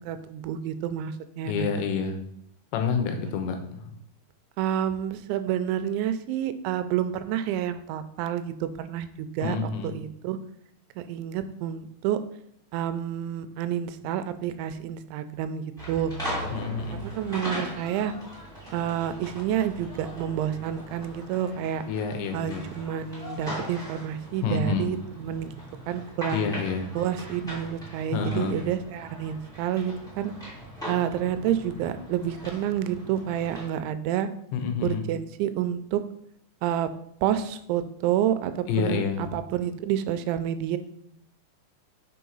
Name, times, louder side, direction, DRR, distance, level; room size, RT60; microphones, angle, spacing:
voice 1, 0.1-1.7 4.6-9.6 9.8-10.4 11.0-12.2 12.7-16.1 16.9-18.1 18.7-21.8 22.3-25.5 25.9-26.5 27.0-30.3 30.9-34.3 34.8-36.0 36.6-36.9 37.2-40.8, right 10 dB, 85° right, 11 dB, 2.8 m, -29 dB
voice 2, 1.5-2.2 2.7-3.8 9.4-9.9 16.5-17.0 21.9-22.7 24.4-24.9 26.3-26.9 28.1-28.6 34.5-35.0 38.7-39.3, left 5 dB, 80° left, 5 dB, 3.2 m, -28 dB
sound 1, 15.8-33.7, equal, ahead, 2.0 m, -39 dB
6.4 x 4.7 x 5.4 m, 0.71 s
omnidirectional pair, 5.3 m